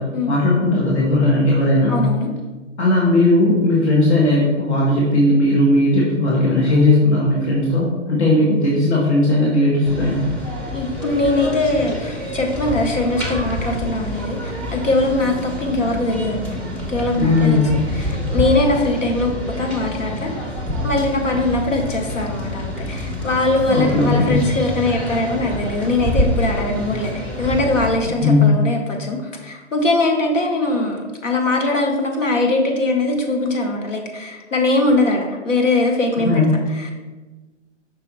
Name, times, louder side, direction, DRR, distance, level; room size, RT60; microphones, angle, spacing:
voice 1, 0.0-2.0 2.8-10.2 17.1-17.8 23.7-24.6 28.2-28.6 36.2-36.5, left 2 dB, 60° left, -4 dB, 1.5 m, -17 dB
voice 2, 1.9-2.3 10.7-16.6 16.9-17.7 18.0-20.3 20.8-36.4 36.8-36.9, left 2 dB, 75° left, 2 dB, 1.3 m, -21 dB
sound 1, 9.8-27.9, left 1 dB, 5° left, 0.6 m, -27 dB
5.5 x 4.2 x 4.1 m, 1.2 s
figure-of-eight pair, 120°, 37 cm